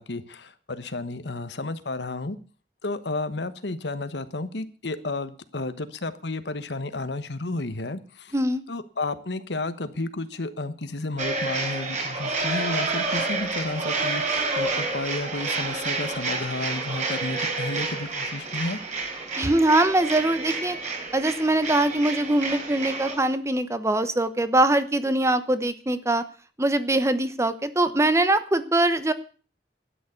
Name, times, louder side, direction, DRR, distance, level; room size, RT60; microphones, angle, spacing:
voice 1, 0.0-2.4 2.8-8.3 8.7-18.8, left 2 dB, 80° left, 12 dB, 1.2 m, -32 dB
sound 1, 11.2-23.2, right 3 dB, 45° right, 4.2 m, -29 dB
voice 2, 19.4-20.8 21.1-26.2 26.6-29.1, right 1 dB, 15° right, 12 dB, 1.0 m, -22 dB
12.5 x 9.5 x 8.2 m, 0.40 s
head